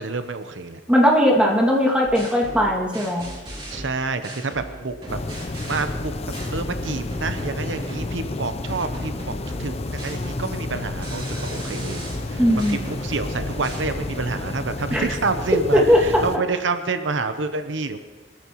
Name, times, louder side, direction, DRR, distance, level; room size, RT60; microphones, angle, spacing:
voice 1, 0.0-0.8 3.7-6.1 6.5-9.3 9.6-12.4 12.7-18.0, right 4 dB, 85° right, 9 dB, 0.9 m, -28 dB
voice 2, 0.9-3.3 12.4-12.9 14.9-15.0 15.7-16.0, equal, 5° right, -2 dB, 2.3 m, -18 dB
sound 1, 2.0-8.2 8.7-14.3, equal, 30° right, 3.1 m, -37 dB
sound 2, 5.1-16.4, left 2 dB, 35° left, 0.6 m, -31 dB
24.5 x 14.0 x 3.1 m, 1.3 s
head